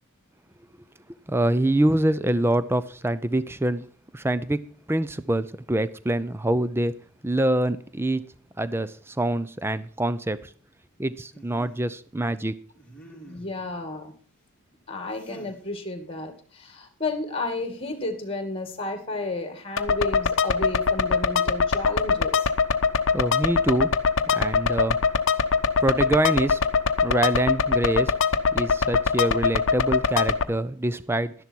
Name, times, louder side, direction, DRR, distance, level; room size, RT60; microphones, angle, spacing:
voice 1, 1.3-3.9 4.1-6.9 7.2-8.3 8.6-10.4 11.0-12.5 23.1-23.9 24.3-25.0 25.8-26.6 27.0-28.1 28.5-31.3, right 1 dB, 10° right, 0.5 m, -25 dB
sound 1, 11.3-11.9 12.7-13.7 15.1-15.6 17.6-18.0, right 1 dB, 5° left, 3.5 m, -48 dB
voice 2, 13.3-14.1 14.9-22.4, left 2 dB, 25° left, 2.2 m, -32 dB
sound 2, 19.8-30.4, left 5 dB, 60° left, 0.8 m, -23 dB
12.0 x 11.0 x 4.6 m
head